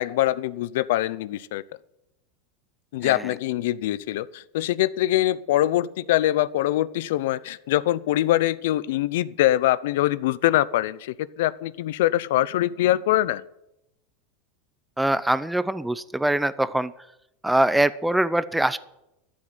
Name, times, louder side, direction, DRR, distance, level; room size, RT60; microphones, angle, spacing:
voice 1, 0.0-1.6 2.9-13.4, left 14 dB, 75° left, 18 dB, 0.7 m, -23 dB
voice 2, 15.0-16.9 17.4-18.8, right 1 dB, 5° right, 15 dB, 0.5 m, -23 dB
13.5 x 7.7 x 8.0 m, 0.84 s
supercardioid pair, 145°, 0 cm